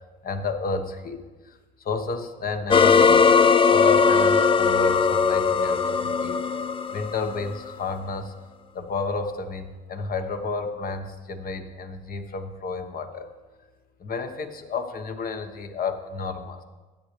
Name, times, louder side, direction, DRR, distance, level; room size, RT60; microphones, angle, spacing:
voice 1, 0.2-1.6 1.8-6.4 6.9-8.3 8.7-13.3 14.0-16.6, left 4 dB, 45° left, 7 dB, 1.3 m, -31 dB
sound 1, 2.7-7.7, left 5 dB, 25° left, 0.5 m, -19 dB
16.0 x 10.5 x 3.3 m, 1.2 s
supercardioid pair, 85°, 20 cm